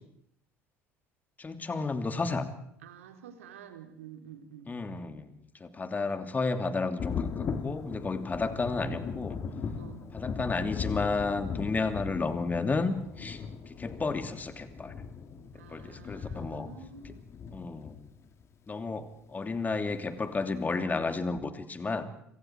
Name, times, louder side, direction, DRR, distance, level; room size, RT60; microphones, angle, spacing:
voice 1, 1.4-2.5 4.7-5.3 5.6-9.4 10.1-14.9 15.7-16.7 17.5-18.0 18.7-22.1, left 3 dB, 25° left, 8 dB, 3.0 m, -32 dB
voice 2, 2.8-4.7 9.8-10.1 15.5-17.3, right 7 dB, 75° right, 6 dB, 3.4 m, -49 dB
Thunder, 7.0-18.4 19.7-19.8 20.3-20.4, left 6 dB, 40° left, 3.4 m, -38 dB
29.5 x 27.5 x 4.8 m, 0.73 s
figure-of-eight pair, 60°, 7 cm